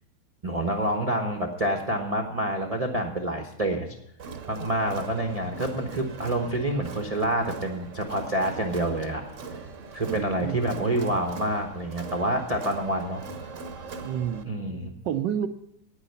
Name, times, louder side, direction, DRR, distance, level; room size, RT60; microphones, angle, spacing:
voice 1, 0.4-3.9 4.5-9.2 9.9-13.5 14.4-14.9, right 1 dB, 30° right, 4 dB, 0.7 m, -27 dB
Crowd, 4.2-14.4, right 4 dB, 50° right, 1.0 m, -41 dB
voice 2, 10.1-10.6 14.0-14.5 15.0-15.5, right 9 dB, 70° right, 8 dB, 1.2 m, -29 dB
9.8 x 9.1 x 6.9 m, 0.80 s
omnidirectional pair, 2.3 m